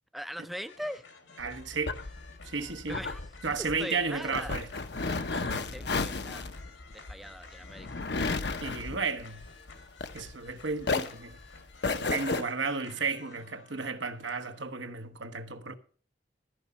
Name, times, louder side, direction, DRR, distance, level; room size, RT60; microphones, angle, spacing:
voice 1, 0.1-1.0 2.9-3.2 3.8-4.5 5.3-6.5 6.9-7.9, equal, ahead, 0.5 m, -40 dB
sound 1, 0.7-14.7, left 4 dB, 80° left, 2.1 m, -53 dB
sound 2, 1.4-10.5 10.8-12.4, left 3 dB, 60° left, 0.8 m, -33 dB
voice 2, 1.4-2.0 2.4-3.0 3.4-4.7 8.6-9.4 10.1-11.4 11.9-15.7, right 4 dB, 75° right, 1.1 m, -33 dB
13.0 x 5.3 x 7.0 m
head